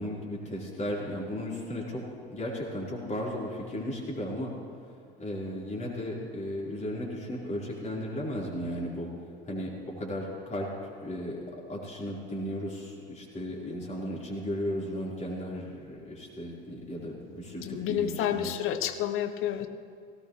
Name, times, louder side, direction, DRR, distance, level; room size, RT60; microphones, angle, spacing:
voice 1, 0.0-2.0 2.3-4.5 4.8-9.1 9.4-10.7 11.0-11.4 11.7-18.6, equal, 25° left, -4 dB, 4.3 m, -35 dB
voice 2, 17.6-19.7, left 10 dB, 45° left, 9 dB, 1.0 m, -30 dB
18.0 x 17.0 x 3.2 m, 2.4 s
figure-of-eight pair, 70°, 29 cm